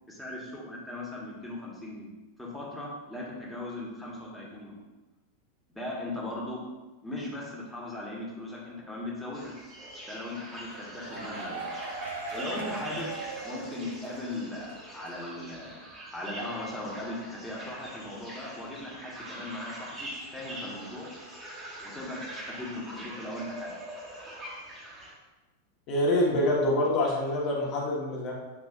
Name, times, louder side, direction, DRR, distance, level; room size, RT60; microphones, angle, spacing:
voice 1, 0.0-2.1 2.4-4.8 5.7-6.6 7.0-9.5 10.1-11.7 12.3-13.1 13.4-15.7 16.1-21.1 21.8-22.2 22.5-23.7, left 1 dB, 5° left, -5 dB, 1.3 m, -38 dB
sound 1, 9.3-25.1, right 1 dB, 20° right, 1.3 m, -43 dB
sound 2, 10.7-14.3 14.6-14.7 15.1-15.2, right 3 dB, 70° right, 0.6 m, -39 dB
voice 2, 25.9-28.3, left 1 dB, 40° left, -3 dB, 1.1 m, -26 dB
6.9 x 2.9 x 2.4 m, 1.1 s
figure-of-eight pair, 90°, 0 cm